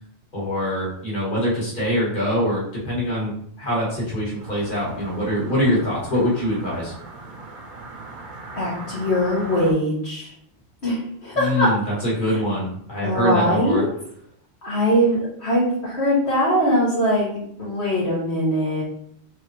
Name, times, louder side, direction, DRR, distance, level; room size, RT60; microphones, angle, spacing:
voice 1, 0.3-3.3 3.6-6.9 11.3-13.8, equal, 50° left, -6 dB, 2.1 m, -23 dB
sound 1, 4.4-9.7, right 3 dB, 55° right, 0.9 m, -39 dB
voice 2, 8.5-10.3 10.8-11.7 12.3-12.4 13.0-13.9 14.6-17.3 17.6-18.8, equal, 75° left, -8 dB, 1.7 m, -21 dB
4.4 x 3.6 x 3.3 m, 0.66 s
omnidirectional pair, 1.1 m